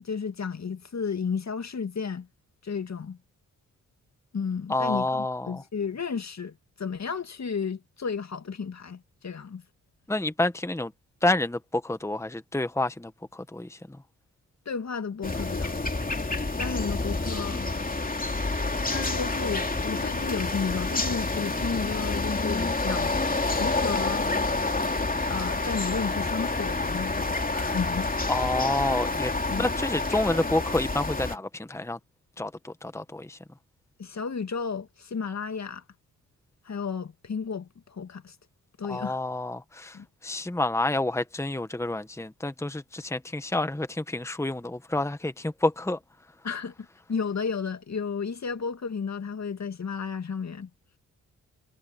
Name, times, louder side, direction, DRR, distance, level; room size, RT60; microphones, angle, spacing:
voice 1, 0.0-2.3 2.6-3.2 4.3-9.6 14.7-16.0 16.6-17.7 18.9-23.2 23.6-24.3 25.3-28.1 29.5-29.7 34.0-35.8 36.6-38.4 38.8-39.2 39.9-40.1 46.4-46.7 47.1-50.7, left 5 dB, 45° left, 2.4 m, -33 dB
voice 2, 4.7-5.6 10.1-10.9 11.2-14.0 28.3-29.3 29.6-32.0 32.4-33.4 38.8-40.0 40.2-46.0, left 2 dB, 10° left, 1.4 m, -29 dB
sound 1, 15.2-31.4, left 3 dB, 25° left, 3.0 m, -28 dB
supercardioid pair, 45°, 36 cm